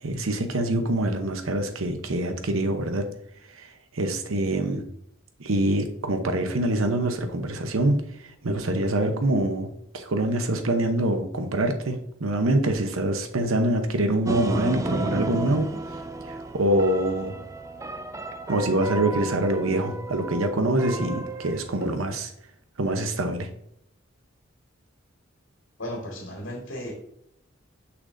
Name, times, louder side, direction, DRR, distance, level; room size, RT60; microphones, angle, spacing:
voice 1, 0.0-3.1 3.6-3.7 3.9-4.8 5.4-8.0 8.4-9.7 9.9-15.7 16.3-17.3 18.5-22.3 22.8-23.5, right 1 dB, 90° right, 7 dB, 0.9 m, -25 dB
sound 1, 14.3-21.8, right 2 dB, 15° right, 0.4 m, -33 dB
voice 2, 25.8-26.9, equal, 65° left, -1 dB, 1.7 m, -35 dB
6.4 x 6.0 x 2.6 m, 0.72 s
head